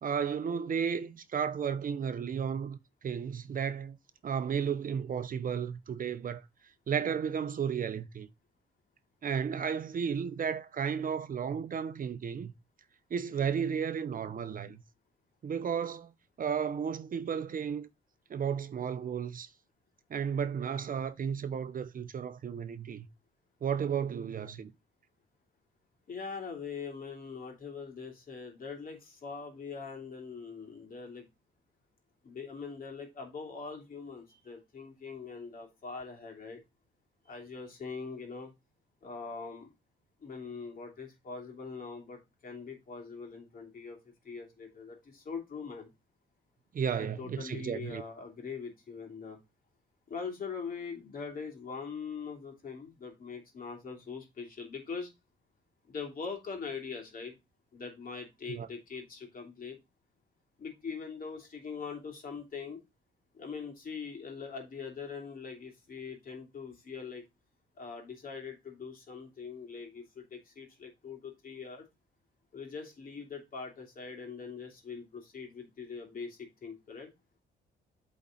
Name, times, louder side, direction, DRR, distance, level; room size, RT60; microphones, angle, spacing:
voice 1, 0.0-2.8 3.0-4.0 4.2-6.4 6.9-8.3 9.2-12.5 13.1-14.8 15.4-16.1 16.4-17.9 18.3-19.5 20.1-23.1 23.6-24.7 46.7-48.0 58.5-58.7, right 7 dB, 45° right, 0.7 m, -33 dB
voice 2, 26.1-31.2 32.2-36.6 37.3-38.5 39.0-39.7 40.2-44.0 44.2-45.9 47.0-49.4 50.1-55.1 55.9-57.3 57.7-59.8 60.6-62.8 63.4-67.2 67.8-71.8 72.5-77.1, left 5 dB, 45° left, 2.8 m, -42 dB
8.2 x 4.2 x 3.7 m
cardioid pair, 90°, 20 cm